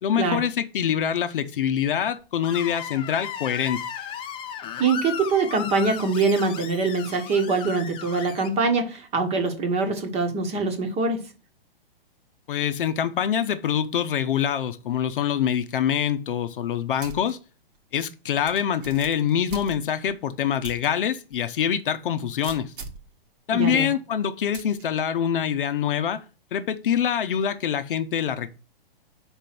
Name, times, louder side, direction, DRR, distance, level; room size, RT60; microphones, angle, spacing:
voice 1, 0.0-3.8 12.5-17.4 17.9-22.7 23.5-26.2 26.5-28.5, left 9 dB, 60° left, 0.8 m, -25 dB
Screech, 2.4-8.5, left 8 dB, 15° left, 0.6 m, -35 dB
voice 2, 4.8-11.3 23.5-23.9, right 4 dB, 20° right, 1.2 m, -24 dB
sound 1, 17.0-17.3 17.7-17.8 18.5-20.1 20.6-20.9 21.3-21.4 22.4-23.1 24.5-24.8, right 4 dB, 60° right, 1.4 m, -40 dB
5.2 x 4.5 x 5.9 m
hypercardioid pair, 125°, 30 cm